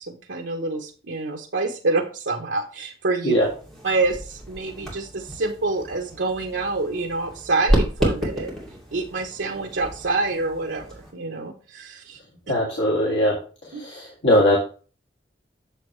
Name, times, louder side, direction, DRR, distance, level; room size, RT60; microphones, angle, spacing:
voice 1, 0.0-3.3 3.8-8.5 8.9-10.8 11.1-12.2 13.7-13.8, right 3 dB, 80° right, 1 dB, 0.9 m, -26 dB
sound 1, 3.4-11.1, equal, 5° left, 2.5 m, -30 dB
voice 2, 12.5-13.4 13.6-14.6, left 1 dB, 80° left, -4 dB, 1.8 m, -20 dB
8.1 x 6.9 x 3.2 m, 0.37 s
head